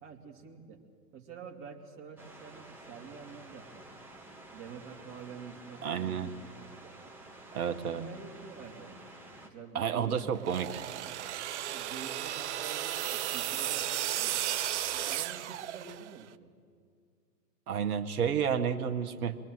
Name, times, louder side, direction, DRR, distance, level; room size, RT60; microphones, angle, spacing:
voice 1, 0.0-0.8 1.1-3.9 4.5-7.0 7.7-9.0 9.4-11.0 11.7-14.4 14.9-16.5, right 6 dB, 25° right, 3 dB, 2.6 m, -48 dB
sound 1, 2.2-9.5, right 2 dB, 5° right, 2.3 m, -51 dB
voice 2, 5.8-6.3 7.5-8.0 9.8-10.7 17.7-19.4, right 7 dB, 60° right, 7 dB, 1.7 m, -30 dB
sound 2, 10.3-16.2, right 12 dB, 45° right, 0.7 m, -34 dB
28.0 x 22.5 x 7.9 m, 2.2 s
hypercardioid pair, 125°, 50 cm